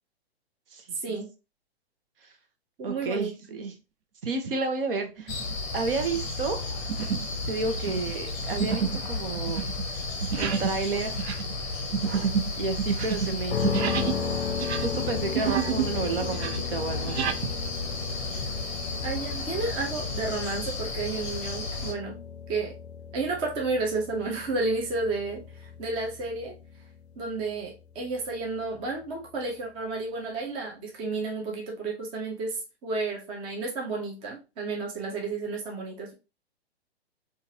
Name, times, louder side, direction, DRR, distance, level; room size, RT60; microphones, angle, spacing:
voice 1, 0.7-1.2 2.2-2.3 2.8-3.7 4.2-5.3 5.7-6.6 7.5-9.7 10.4-11.2 12.6-14.4 14.8-17.5, right 4 dB, 55° right, 0.9 m, -31 dB
voice 2, 2.8-3.3 19.0-22.2 22.5-22.8 23.1-26.5 27.2-36.1, right 3 dB, 15° right, 0.6 m, -31 dB
sound 1, 5.2-5.5 6.0-6.3 6.9-7.4 7.6-14.2 14.5-15.9 16.2-17.4, right 7 dB, 75° right, 0.6 m, -30 dB
sound 2, 5.3-21.9, left 3 dB, 25° left, 0.7 m, -33 dB
sound 3, 13.5-29.4, left 7 dB, 85° left, 0.6 m, -36 dB
3.8 x 2.4 x 2.8 m
hypercardioid pair, 125°, 32 cm